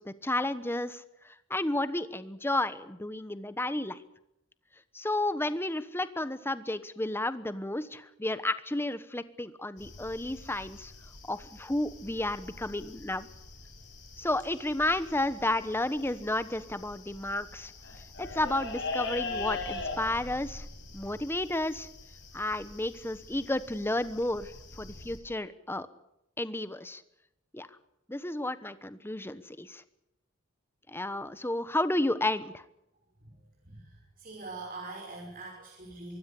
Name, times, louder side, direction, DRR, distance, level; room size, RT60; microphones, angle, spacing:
voice 1, 0.0-4.0 4.9-10.9 11.3-13.3 14.2-17.7 18.2-20.7 20.9-21.9 22.3-24.5 24.8-25.9 26.4-27.0 27.5-27.7 28.1-29.8 30.9-32.6, left 1 dB, 10° left, 13 dB, 1.1 m, -32 dB
sound 1, 9.8-25.2, left 3 dB, 60° left, 6.4 m, -42 dB
voice 2, 33.6-36.2, right 3 dB, 45° right, -1 dB, 5.7 m, -43 dB
24.0 x 16.5 x 8.5 m, 0.83 s
head